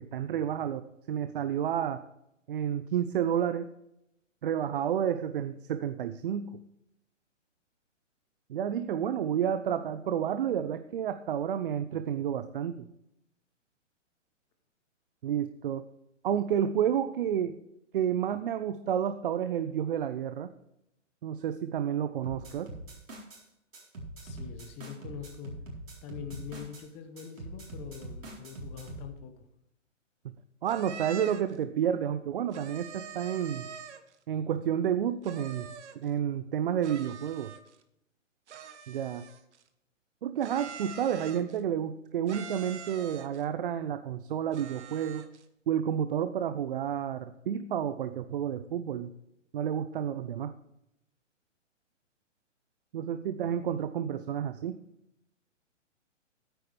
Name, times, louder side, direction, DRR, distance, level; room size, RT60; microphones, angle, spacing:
voice 1, 0.0-2.0 2.5-3.7 4.4-6.6 8.5-12.9 15.2-15.9 16.2-17.6 17.9-20.5 21.2-22.7 30.6-33.7 34.3-35.7 36.0-37.5 38.9-39.2 40.2-45.2 45.7-49.1 49.5-50.5 52.9-54.8, right 9 dB, 45° right, 11 dB, 0.6 m, -30 dB
sound 1, 22.2-23.4 23.7-26.8 27.2-29.1, right 2 dB, 80° right, 4.2 m, -43 dB
voice 2, 24.2-25.6 26.0-29.4, left 8 dB, 15° left, 6 dB, 0.9 m, -44 dB
sound 2, 30.7-31.6 32.5-34.2 35.2-36.1 36.8-37.8 38.5-39.6 40.4-41.6 42.3-43.4 44.5-45.4, right 7 dB, 60° right, 1.2 m, -45 dB
13.5 x 9.1 x 3.4 m, 0.81 s
hypercardioid pair, 140°, 38 cm